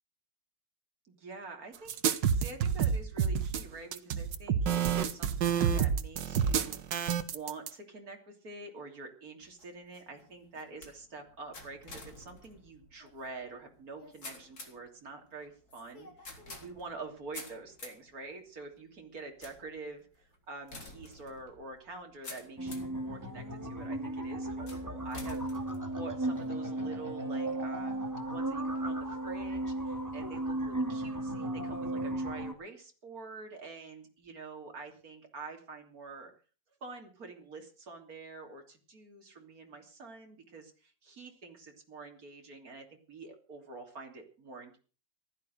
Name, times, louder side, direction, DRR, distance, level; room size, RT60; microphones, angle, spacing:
voice 1, 1.1-16.3 16.6-25.4 25.9-36.3 36.8-44.8, right 3 dB, 55° right, 3 dB, 3.6 m, -47 dB
sound 1, 1.9-7.7, right 7 dB, 85° right, 1.8 m, -29 dB
sound 2, 9.4-23.0 23.6-24.0 24.7-26.5, left 2 dB, 55° left, 4.1 m, -51 dB
sound 3, 22.6-32.5, right 1 dB, 10° right, 1.8 m, -35 dB
15.5 x 12.5 x 6.4 m, 0.38 s
omnidirectional pair, 1.9 m